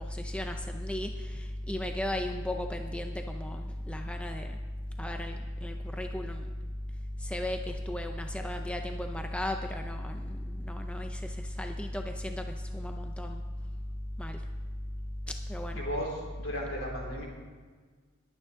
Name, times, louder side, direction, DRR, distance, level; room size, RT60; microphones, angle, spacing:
voice 1, 0.0-4.6 5.0-6.5 7.2-13.4 14.2-14.4 15.3-15.8, left 1 dB, 5° left, 4 dB, 0.5 m, -35 dB
voice 2, 15.7-17.2, equal, 65° left, -2 dB, 3.9 m, -35 dB
21.0 x 9.2 x 3.7 m, 1.5 s
head